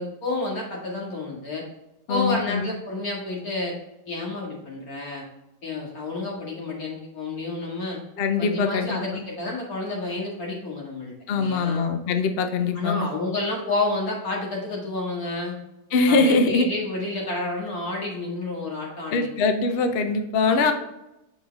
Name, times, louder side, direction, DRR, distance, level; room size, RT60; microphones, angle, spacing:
voice 1, 0.0-1.6 2.1-3.7 4.1-5.2 5.6-8.0 8.4-11.9 12.7-15.5 16.1-19.3 20.5-20.7, left 2 dB, 55° left, -3 dB, 2.4 m, -30 dB
voice 2, 2.1-2.7 8.2-9.2 11.3-13.1 15.9-16.7 19.1-20.7, left 4 dB, 75° left, 7 dB, 0.5 m, -22 dB
7.8 x 5.0 x 3.5 m, 0.91 s
omnidirectional pair, 1.9 m